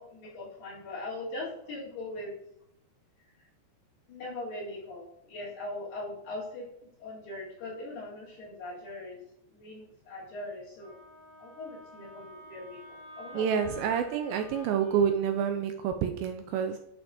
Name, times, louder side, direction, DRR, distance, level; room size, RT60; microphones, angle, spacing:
voice 1, 0.0-2.3 4.1-6.7 7.0-9.2 9.5-11.0 11.4-13.7, left 2 dB, 65° left, -5 dB, 3.8 m, -40 dB
Wind instrument woodwind instrument, 10.8-15.2, equal, 85° left, 3.8 m, -50 dB
voice 2, 13.3-16.8, right 7 dB, 80° right, 6 dB, 2.2 m, -28 dB
11.5 x 5.3 x 2.8 m, 0.78 s
omnidirectional pair, 4.5 m